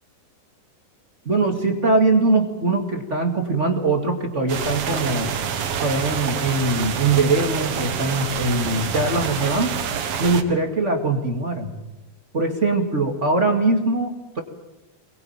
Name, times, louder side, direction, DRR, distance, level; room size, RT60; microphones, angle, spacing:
voice 1, 1.3-5.3 5.8-9.8 10.2-11.7 12.3-14.4, right 3 dB, 25° right, 5 dB, 1.9 m, -21 dB
sound 1, 4.5-10.4, right 7 dB, 55° right, 2.2 m, -27 dB
24.0 x 21.5 x 8.9 m, 1.0 s
omnidirectional pair, 3.8 m